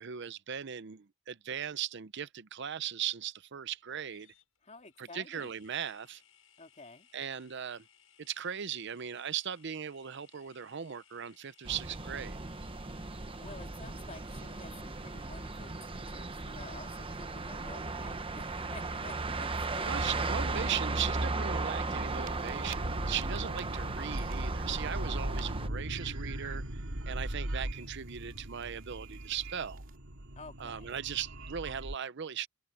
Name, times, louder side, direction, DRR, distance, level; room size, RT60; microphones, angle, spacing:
voice 1, 0.0-4.3 5.0-6.2 7.1-7.9 8.2-12.4 19.8-29.8 30.6-32.5, right 8 dB, 55° right, 0.6 m, -38 dB
sound 1, 3.8-19.3, left 8 dB, 85° left, 7.5 m, -64 dB
voice 2, 4.6-5.5 6.6-7.1 13.4-20.2 23.0-23.4 30.4-30.9, left 3 dB, 35° left, 3.6 m, -51 dB
sound 2, 11.7-25.7, right 3 dB, 25° right, 0.9 m, -36 dB
sound 3, 22.1-31.9, right 1 dB, 70° right, 2.3 m, -39 dB
open air
head